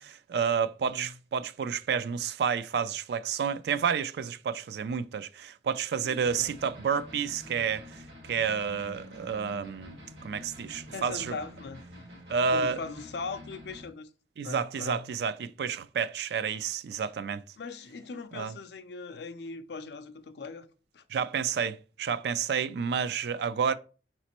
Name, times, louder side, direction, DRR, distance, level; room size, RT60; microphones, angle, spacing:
voice 1, 0.0-10.0 10.2-11.3 12.3-12.8 14.4-17.4 18.3-18.5 21.1-23.7, right 6 dB, 65° right, 0.3 m, -30 dB
voice 2, 0.8-1.1 6.0-6.4 10.9-11.8 12.5-14.1 14.4-15.1 17.6-20.7 20.9-21.0, left 4 dB, 70° left, 0.5 m, -40 dB
sound 1, 6.2-13.9, left 1 dB, 85° right, 1.5 m, -48 dB
5.0 x 3.0 x 2.9 m
head